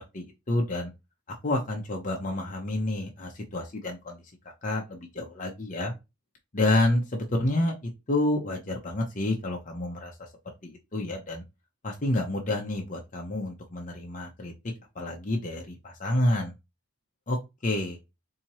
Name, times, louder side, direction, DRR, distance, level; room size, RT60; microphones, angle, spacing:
voice 1, 0.1-0.9 1.4-4.2 4.6-5.9 6.5-10.1 10.6-11.4 11.8-14.5 15.0-16.5 17.3-17.4 17.6-18.0, left 1 dB, 35° left, 1 dB, 0.7 m, -29 dB
4.3 x 2.8 x 2.9 m, 0.24 s
head